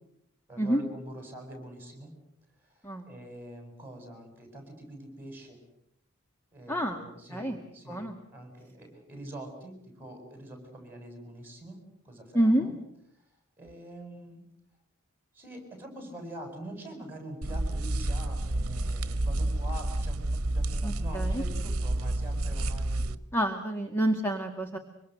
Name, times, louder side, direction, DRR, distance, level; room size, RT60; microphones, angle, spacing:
voice 1, 0.5-2.1 3.1-5.6 6.5-8.1 8.3-12.8 13.6-14.4 15.3-23.1, right 1 dB, 10° right, 4 dB, 7.5 m, -45 dB
voice 2, 6.7-7.0 7.3-7.6 7.9-8.2 12.3-12.7 20.8-21.4 23.3-24.8, right 1 dB, 10° left, 4 dB, 1.9 m, -28 dB
sound 1, 17.4-23.2, right 1 dB, 70° right, 1.2 m, -30 dB
25.0 x 25.0 x 8.0 m, 0.75 s
head